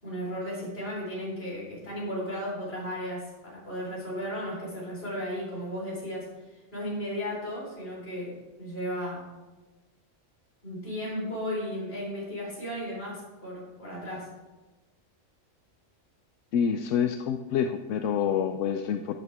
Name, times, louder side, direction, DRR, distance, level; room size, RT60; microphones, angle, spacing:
voice 1, 0.0-9.3 10.6-14.3, equal, 55° left, -5 dB, 4.3 m, -35 dB
voice 2, 16.5-19.1, left 7 dB, 80° left, 7 dB, 0.9 m, -27 dB
12.5 x 9.2 x 3.5 m, 1.2 s
omnidirectional pair, 1.3 m